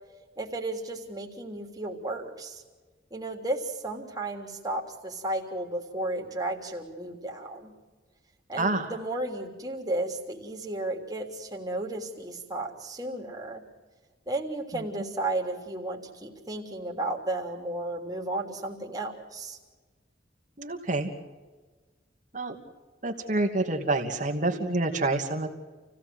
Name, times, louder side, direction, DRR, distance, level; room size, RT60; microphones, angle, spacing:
voice 1, 0.4-2.6 3.1-7.7 8.5-13.6 14.3-19.6, right 2 dB, 20° right, 0 dB, 3.4 m, -33 dB
voice 2, 8.6-8.9 14.7-14.8 20.6-21.1 22.3-22.5 23.0-25.5, right 2 dB, 45° right, 4 dB, 2.6 m, -27 dB
29.0 x 17.0 x 7.9 m, 1.3 s
head